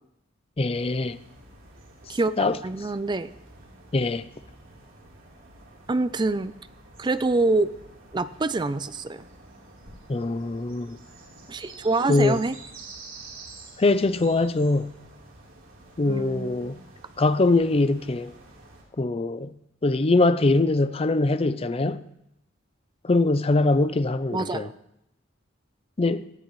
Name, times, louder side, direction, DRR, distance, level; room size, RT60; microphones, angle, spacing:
voice 1, 0.6-1.2 2.4-2.6 3.9-4.2 10.1-11.0 12.1-12.4 13.8-15.0 16.0-16.8 17.2-18.3 19.0-19.5 19.8-22.0 23.0-24.7 26.0-26.2, left 2 dB, 30° left, 0.5 m, -22 dB
sound 1, 0.7-18.8, right 2 dB, 85° right, 3.8 m, -48 dB
voice 2, 2.1-3.3 5.9-6.5 7.0-7.7 8.1-9.2 11.5-12.6 16.0-16.9 24.3-24.7, right 3 dB, 20° right, 0.4 m, -26 dB
18.5 x 13.0 x 3.2 m
head